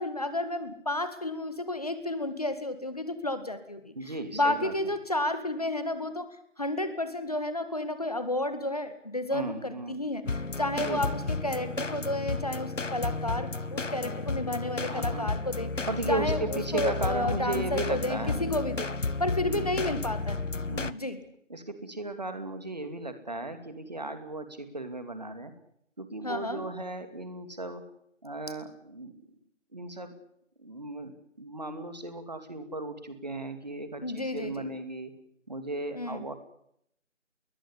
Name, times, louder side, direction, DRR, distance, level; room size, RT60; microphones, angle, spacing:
voice 1, 0.0-3.9 4.3-20.4 20.9-21.2 26.2-26.6 34.0-34.7 35.9-36.2, left 1 dB, 30° left, 11 dB, 1.8 m, -31 dB
voice 2, 4.0-4.7 9.3-10.0 10.8-11.0 14.9-15.3 15.9-18.4 19.4-19.7 20.7-21.0 21.5-25.5 26.0-27.8 28.2-29.1 29.7-30.1 30.6-35.1 35.5-36.3, right 2 dB, 35° right, 9 dB, 2.5 m, -36 dB
sound 1, 10.2-20.9, left 3 dB, 75° left, 1.2 m, -32 dB
21.5 x 18.5 x 9.9 m, 0.74 s
figure-of-eight pair, 170°, 38 cm